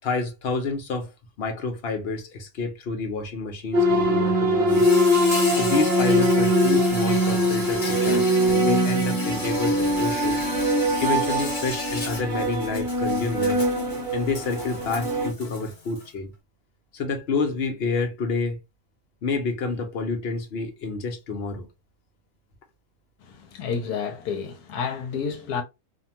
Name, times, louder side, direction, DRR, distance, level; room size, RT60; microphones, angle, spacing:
voice 1, 0.0-1.1 1.4-4.9 5.6-10.4 11.0-13.6 14.1-16.3 16.9-18.6 19.2-21.7, left 4 dB, 55° left, 0.7 m, -29 dB
sound 1, 3.7-15.3, equal, 50° right, 0.7 m, -22 dB
Insect, 4.7-16.1, left 2 dB, 35° left, 1.0 m, -35 dB
voice 2, 23.2-25.6, left 6 dB, 80° left, 1.1 m, -30 dB
2.6 x 2.2 x 2.7 m
omnidirectional pair, 1.6 m